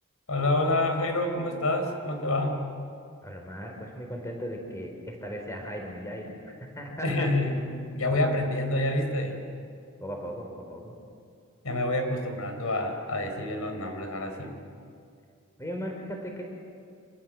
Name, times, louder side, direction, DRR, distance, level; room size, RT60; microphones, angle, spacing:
voice 1, 0.3-2.6 7.0-7.6 7.9-9.4 11.6-14.6, left 1 dB, 85° left, 5 dB, 4.7 m, -27 dB
voice 2, 3.2-7.3 10.0-11.0 15.6-16.4, equal, 15° left, 2 dB, 4.3 m, -37 dB
29.5 x 26.5 x 7.7 m, 2.3 s
head